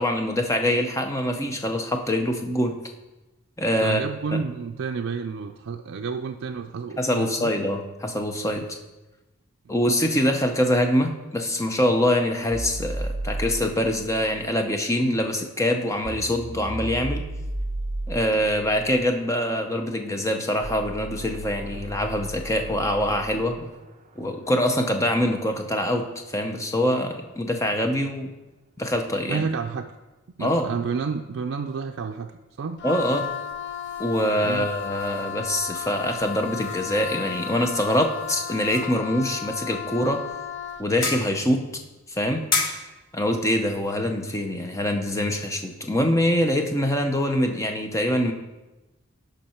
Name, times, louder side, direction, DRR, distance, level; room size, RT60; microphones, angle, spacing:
voice 1, 0.0-2.7 3.6-4.0 4.3-4.4 7.0-8.6 9.7-17.2 18.1-23.7 24.2-28.3 28.8-29.5 30.4-30.7 32.8-33.3 34.0-40.2 40.8-41.6 42.1-42.4 43.1-48.3, left 1 dB, 15° left, 4 dB, 0.7 m, -24 dB
voice 2, 3.7-7.5 9.7-9.8 29.3-29.9 30.4-32.8 34.4-34.7, right 5 dB, 75° right, 3 dB, 0.4 m, -30 dB
sound 1, 12.5-23.8, right 1 dB, 35° right, 0.7 m, -35 dB
Wind instrument woodwind instrument, 32.8-40.9, left 9 dB, 55° left, 0.5 m, -34 dB
sound 2, 32.9-45.9, left 4 dB, 75° left, 1.5 m, -37 dB
12.0 x 5.2 x 4.4 m, 1.1 s
head